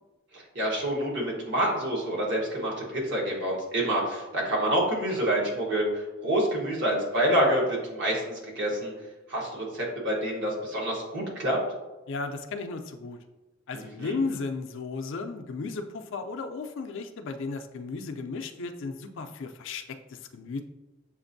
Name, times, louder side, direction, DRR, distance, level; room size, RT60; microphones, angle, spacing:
voice 1, 0.3-8.9 9.3-11.6 13.7-14.2, right 1 dB, 60° right, -3 dB, 1.3 m, -27 dB
voice 2, 12.1-13.2 13.7-20.6, left 4 dB, 65° left, 7 dB, 0.4 m, -34 dB
6.8 x 2.5 x 2.6 m, 1.1 s
head